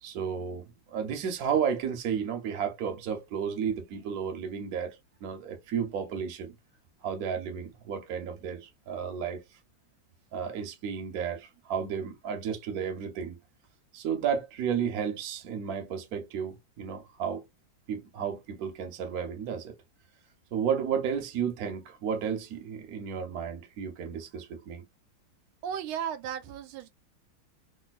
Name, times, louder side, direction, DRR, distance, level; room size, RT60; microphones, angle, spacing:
voice 1, 0.0-6.5 7.0-9.4 10.3-13.4 13.9-17.4 17.9-19.7 20.5-24.8, right 7 dB, 55° right, 1.2 m, -32 dB
voice 2, 25.6-26.9, right 8 dB, 85° right, 1.5 m, -35 dB
3.3 x 2.6 x 2.4 m
omnidirectional pair, 2.3 m